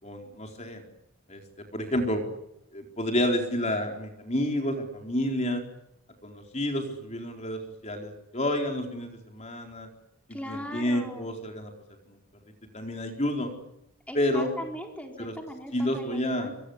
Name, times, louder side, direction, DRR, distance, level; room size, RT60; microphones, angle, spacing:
voice 1, 0.0-0.8 1.3-1.4 1.7-2.2 2.7-5.6 6.2-9.9 10.4-11.7 12.7-13.5 14.1-14.5 15.2-15.3 15.7-16.5, left 1 dB, 30° left, 3 dB, 4.4 m, -29 dB
voice 2, 10.3-11.3 14.1-16.5, equal, 5° left, 1 dB, 4.2 m, -39 dB
27.5 x 25.5 x 8.2 m, 0.81 s
head